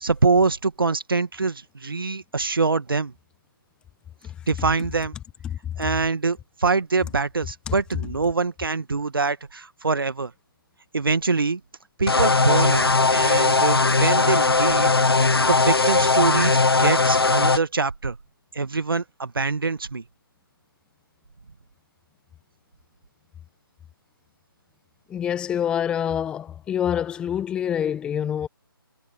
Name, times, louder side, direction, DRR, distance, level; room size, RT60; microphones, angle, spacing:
voice 1, 0.0-3.1 4.5-5.2 5.8-10.3 10.9-11.6 12.0-15.0 15.5-18.2 18.5-20.0, right 4 dB, 65° right, 1.9 m, -24 dB
sound 1, 12.1-17.6, left 3 dB, 80° left, 0.9 m, -19 dB
voice 2, 25.1-28.5, left 9 dB, 5° left, 1.5 m, -26 dB
figure-of-eight pair, 155°, 12 cm